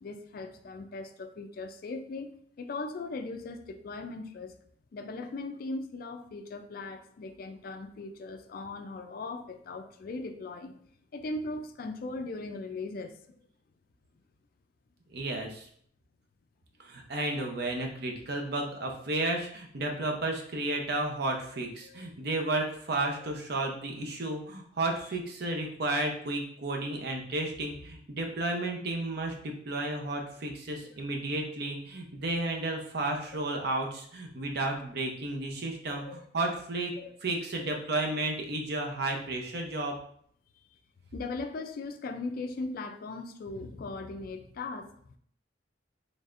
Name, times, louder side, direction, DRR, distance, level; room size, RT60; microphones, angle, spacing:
voice 1, 0.0-4.5 4.9-10.8 11.1-13.4 21.8-22.0 23.2-23.3 30.0-30.1 30.7-31.1 32.4-32.5 33.3-33.4 35.9-36.3 37.0-37.2 37.5-37.9 41.1-45.2, left 3 dB, 50° left, 7 dB, 0.3 m, -39 dB
voice 2, 15.1-15.7 16.8-36.9 37.2-40.0, right 2 dB, 55° right, 2 dB, 0.7 m, -32 dB
4.0 x 3.3 x 2.5 m, 0.62 s
head